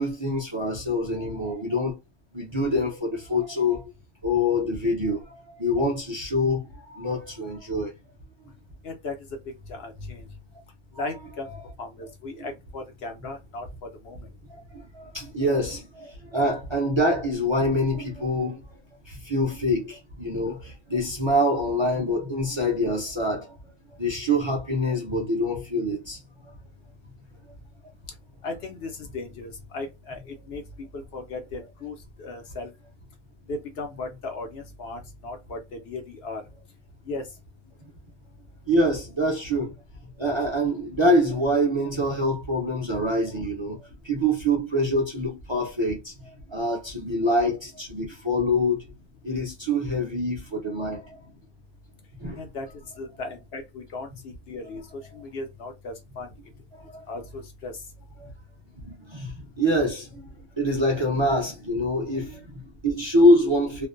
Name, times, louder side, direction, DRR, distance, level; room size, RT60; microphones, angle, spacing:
voice 1, 0.0-2.0 2.3-3.9 4.2-7.9 11.4-11.5 12.4-12.5 14.5-18.6 19.1-23.5 24.0-26.2 38.7-39.7 40.2-46.1 46.5-48.9 49.2-51.2 52.2-52.4 56.7-57.1 58.2-58.3 58.8-60.3 60.6-63.9, left 1 dB, 35° right, 0.5 m, -25 dB
voice 2, 8.8-10.3 10.9-14.3 28.4-32.7 33.5-36.4 37.0-37.3 51.2-51.3 52.4-56.4 57.1-57.7 59.4-59.5 62.1-62.7, left 3 dB, 65° left, 0.9 m, -37 dB
2.5 x 2.2 x 2.4 m
omnidirectional pair, 1.2 m